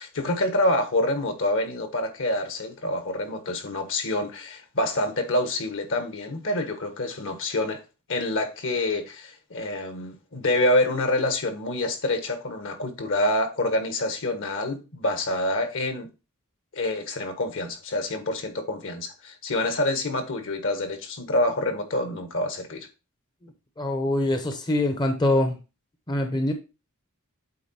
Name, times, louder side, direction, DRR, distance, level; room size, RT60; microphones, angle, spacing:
voice 1, 0.0-7.8 8.1-16.1 16.7-22.9, left 1 dB, 60° left, 1.4 m, -27 dB
voice 2, 23.8-25.6 26.1-26.5, left 1 dB, 20° left, 0.7 m, -24 dB
8.5 x 3.9 x 4.2 m
head